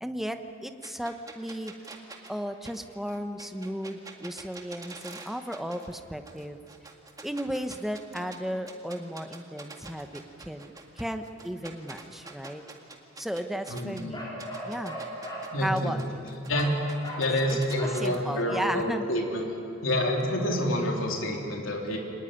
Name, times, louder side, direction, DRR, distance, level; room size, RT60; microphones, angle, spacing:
voice 1, 0.0-1.7 2.3-6.6 7.2-12.6 13.2-14.3 14.6-15.0 15.6-16.2 17.3-19.1, equal, ahead, 7 dB, 1.0 m, -35 dB
sound 1, 0.8-6.0 6.2-8.4 8.7-14.0 14.4-18.2, right 3 dB, 15° right, 1.9 m, -45 dB
voice 2, 13.7-14.1 15.5-15.9 16.5-16.7 17.2-19.5 19.8-22.0, left 1 dB, 75° left, 0 dB, 3.5 m, -28 dB
Bark, 14.1-15.5 16.5-16.8 17.0-17.3 17.7-18.0 18.5-18.8, equal, 20° left, 5.6 m, -38 dB
25.5 x 19.5 x 10.0 m, 2.8 s
head